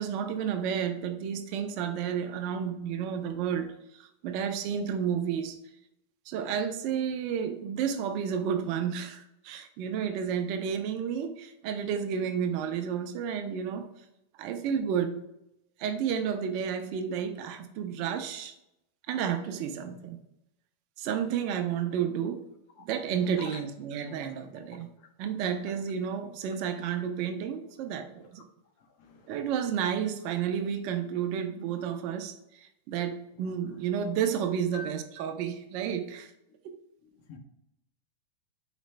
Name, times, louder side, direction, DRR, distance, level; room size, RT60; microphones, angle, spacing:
voice 1, 0.0-3.7 4.0-5.5 6.3-13.9 14.4-15.2 15.8-18.5 19.1-20.2 21.0-22.4 22.8-24.9 25.2-28.4 29.3-36.3, right 8 dB, 45° right, 0.6 m, -31 dB
voice 2, 29.0-29.4 34.7-34.9 37.0-37.4, left 4 dB, 45° left, 0.8 m, -45 dB
5.0 x 3.2 x 3.3 m
supercardioid pair, 160°, 0 cm